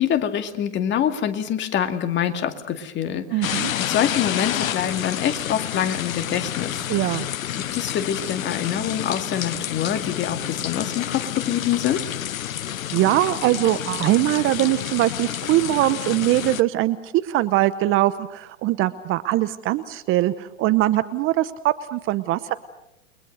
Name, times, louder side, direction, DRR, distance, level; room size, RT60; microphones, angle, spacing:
voice 1, 0.0-6.9 7.6-12.1, left 9 dB, 30° left, 8 dB, 2.2 m, -25 dB
voice 2, 3.3-3.7 6.9-7.3 12.9-22.5, right 15 dB, 30° right, 14 dB, 0.9 m, -22 dB
sound 1, 3.4-16.6, left 11 dB, 85° left, 0.9 m, -29 dB
29.5 x 22.5 x 6.4 m, 0.82 s
hypercardioid pair, 120°, 40 cm